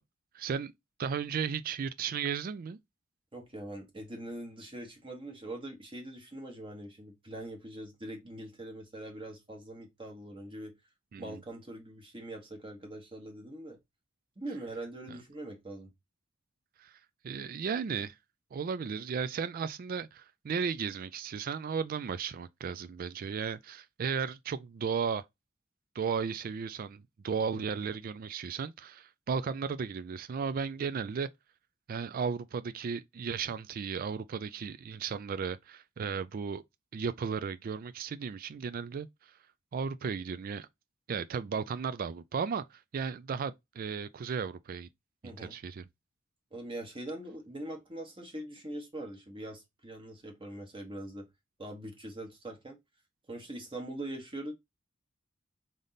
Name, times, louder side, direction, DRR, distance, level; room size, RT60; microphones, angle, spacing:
voice 1, 0.3-0.7 1.0-2.8 11.1-11.4 16.8-17.0 17.2-18.2 18.5-25.2 26.0-31.3 31.9-36.6 36.9-39.3 39.7-40.7 41.1-44.9 45.4-45.9, right 6 dB, 45° right, 0.3 m, -35 dB
voice 2, 3.3-10.7 11.2-13.8 14.4-15.9 27.5-27.8 45.2-45.6 46.5-51.3 51.6-52.8 53.3-54.5, right 1 dB, 25° right, 1.1 m, -42 dB
3.8 x 3.5 x 3.9 m
head